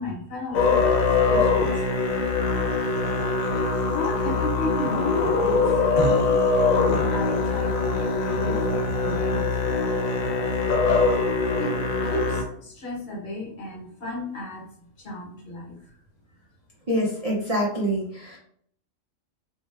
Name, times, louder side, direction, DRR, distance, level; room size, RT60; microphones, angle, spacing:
voice 1, 0.0-2.0 2.8-6.4 7.1-9.8 11.6-16.0, left 1 dB, 55° left, -3 dB, 1.1 m, -36 dB
Musical instrument, 0.5-12.4, left 4 dB, 85° left, 1.0 m, -22 dB
voice 2, 16.9-18.4, equal, 45° right, -5 dB, 0.5 m, -25 dB
2.7 x 2.2 x 3.1 m, 0.64 s
omnidirectional pair, 1.4 m